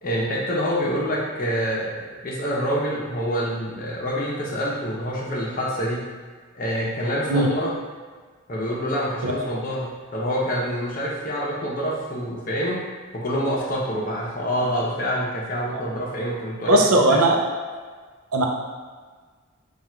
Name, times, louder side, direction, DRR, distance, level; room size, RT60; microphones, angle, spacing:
voice 1, 0.0-6.1 6.5-7.7 8.5-12.8 13.1-17.2, equal, 40° left, -5 dB, 0.8 m, -26 dB
voice 2, 16.7-17.4 18.3-18.5, right 1 dB, 85° right, 1 dB, 0.6 m, -18 dB
3.5 x 2.4 x 4.4 m, 1.5 s
head